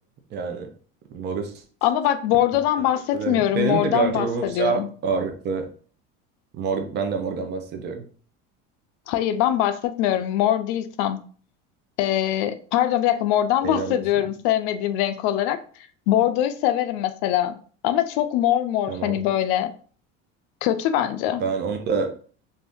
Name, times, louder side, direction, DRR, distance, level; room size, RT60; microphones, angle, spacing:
voice 1, 0.3-0.7 1.1-1.5 3.1-5.7 6.5-8.0 13.6-14.0 18.9-19.2 21.4-22.1, right 5 dB, 35° right, 5 dB, 0.6 m, -26 dB
voice 2, 1.8-4.9 9.1-11.2 12.0-15.6 16.1-17.6 17.8-19.7 20.6-21.4, left 12 dB, 80° left, 10 dB, 0.5 m, -22 dB
2.6 x 2.6 x 3.5 m, 0.42 s
cardioid pair, 135°, 30 cm